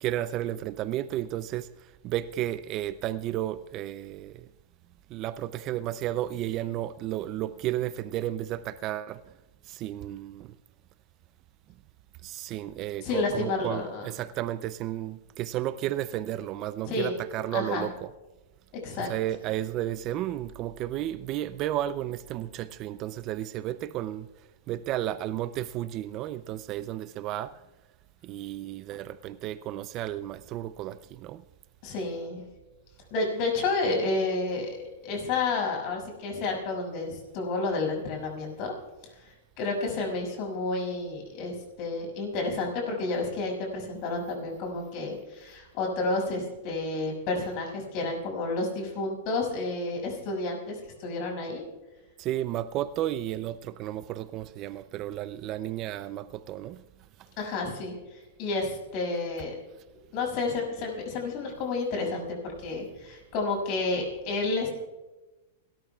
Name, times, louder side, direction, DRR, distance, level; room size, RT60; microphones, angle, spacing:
voice 1, 0.0-1.7 2.0-4.5 5.1-9.2 9.7-10.5 12.2-18.1 19.0-24.3 24.7-27.5 28.2-31.4 52.2-56.8, right 13 dB, 35° right, 0.4 m, -33 dB
voice 2, 13.0-14.1 16.9-17.2 17.5-17.9 18.8-19.1 31.8-32.4 33.1-34.8 35.0-38.7 39.2-51.6 57.4-59.5 60.1-62.4 62.6-64.7, left 3 dB, 40° left, 6.2 m, -30 dB
29.5 x 13.5 x 2.3 m
supercardioid pair, 150°, 0 cm